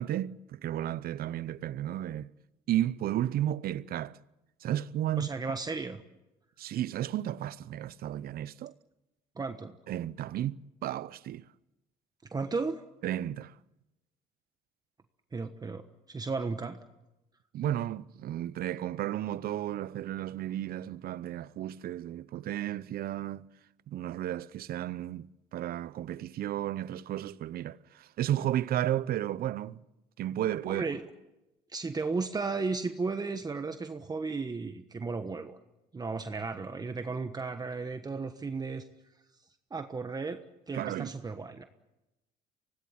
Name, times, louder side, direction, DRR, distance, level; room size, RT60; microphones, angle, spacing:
voice 1, 0.0-2.3 2.7-4.2 4.6-5.3 6.6-8.7 9.9-11.4 13.0-13.6 17.5-23.5 23.9-29.8 30.2-30.8 40.7-41.2, right 12 dB, 60° right, 0.8 m, -33 dB
voice 2, 5.2-6.0 9.4-9.7 12.3-12.8 15.3-16.8 30.7-31.0 31.7-35.6 35.9-38.8 39.7-41.6, right 4 dB, 25° right, 1.3 m, -34 dB
25.0 x 18.5 x 8.8 m
cardioid pair, 110°, 17 cm